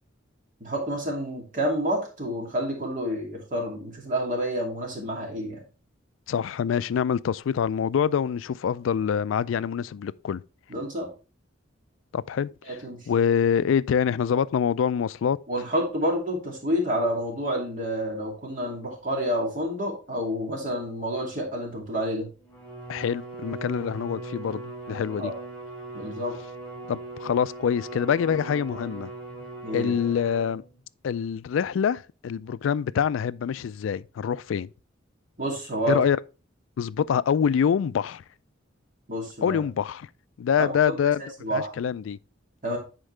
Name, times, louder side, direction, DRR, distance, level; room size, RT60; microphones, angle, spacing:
voice 1, 0.6-5.6 10.7-11.1 12.7-13.0 15.5-22.3 25.2-25.3 25.9-26.3 29.6-29.9 35.4-36.0 39.1-39.6 40.7-41.1 41.4-41.7 42.6-42.8, equal, 40° right, 2.6 m, -29 dB
voice 2, 6.3-10.4 12.1-12.8 13.1-15.4 22.9-25.3 26.9-29.1 29.7-30.6 31.0-34.7 35.9-36.2 36.8-38.2 39.4-40.1 40.4-41.2 41.5-42.2, left 7 dB, 75° left, 0.3 m, -25 dB
Bowed string instrument, 22.5-30.8, right 2 dB, 10° left, 3.1 m, -39 dB
10.0 x 4.5 x 3.3 m
head